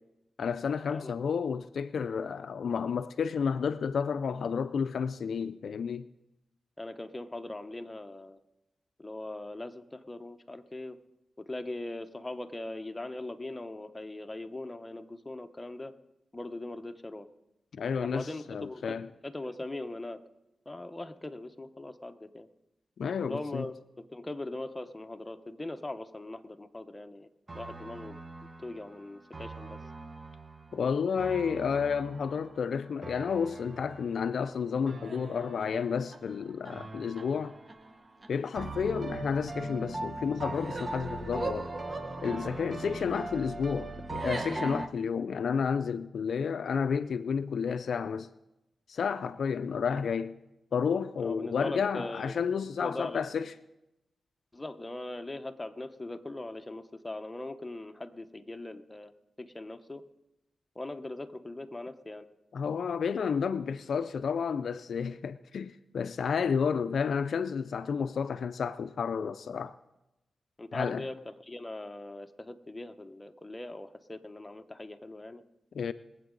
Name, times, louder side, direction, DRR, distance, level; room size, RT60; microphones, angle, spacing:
voice 1, 0.4-6.1 17.7-19.1 23.0-23.7 30.7-37.6 38.3-41.7 42.2-48.3 48.9-50.4 50.7-53.5 62.5-69.8 70.7-71.1 75.7-75.9, left 6 dB, 75° left, 0.4 m, -31 dB
voice 2, 6.8-8.4 9.0-11.0 11.4-15.9 16.3-17.3 18.0-19.0 19.2-20.2 20.7-22.5 23.3-27.3 27.5-28.2 28.6-29.8 51.2-52.4 52.8-53.2 54.5-59.1 59.4-60.0 60.7-62.2 70.6-75.4, left 2 dB, 20° left, 0.9 m, -40 dB
sound 1, 27.5-44.9, right 2 dB, 35° right, 0.9 m, -40 dB
22.0 x 8.2 x 3.9 m
cardioid pair, 65°, 0 cm